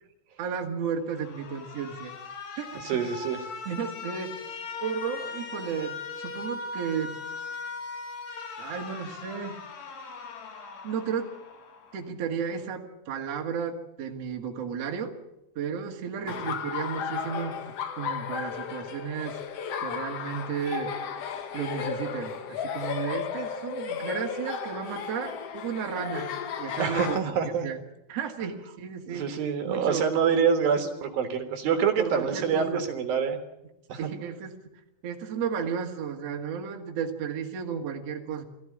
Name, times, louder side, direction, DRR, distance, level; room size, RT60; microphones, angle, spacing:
voice 1, 0.4-2.1 2.6-2.8 3.7-4.4 4.8-7.2 8.6-9.6 10.8-11.3 11.9-15.1 15.6-19.4 19.8-20.9 21.5-26.3 26.6-27.8 28.1-29.3 29.7-30.1 32.0-32.9 34.0-34.6 35.0-38.4, right 6 dB, 45° right, 2 dB, 2.5 m, -33 dB
Alarm, 1.1-12.1, left 4 dB, 50° left, 2.7 m, -40 dB
voice 2, 2.7-3.4 16.2-16.3 26.8-27.7 29.1-33.4 33.9-34.0, right 6 dB, 65° right, 5 dB, 3.1 m, -26 dB
Laughter, 16.3-27.2, left 7 dB, 75° left, 1.4 m, -34 dB
21.0 x 14.5 x 9.9 m, 0.92 s
omnidirectional pair, 4.8 m